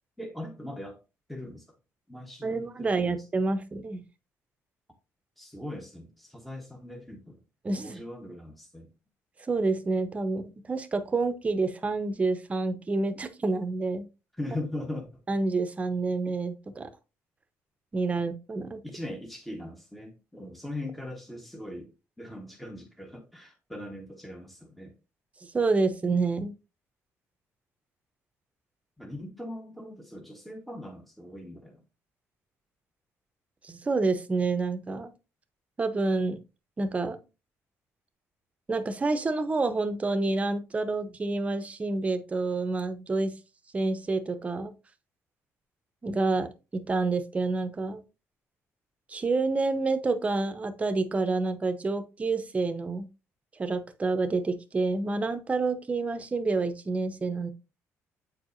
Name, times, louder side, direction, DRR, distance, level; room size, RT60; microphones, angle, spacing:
voice 1, 0.2-1.0 1.3-1.7 2.1-3.2 5.4-7.4 7.8-8.9 14.4-15.2 18.1-18.2 18.8-21.9 22.2-24.9 29.0-31.8, left 1 dB, ahead, 1.0 m, -40 dB
voice 2, 2.4-4.0 7.6-8.0 9.4-14.1 15.3-16.9 17.9-18.8 25.5-26.5 33.6-35.1 35.8-36.4 36.8-37.2 38.7-43.3 43.7-44.7 46.0-48.0 49.1-53.1 53.6-57.5, right 3 dB, 25° right, 0.8 m, -28 dB
8.2 x 4.6 x 2.6 m
cardioid pair, 125°, 6 cm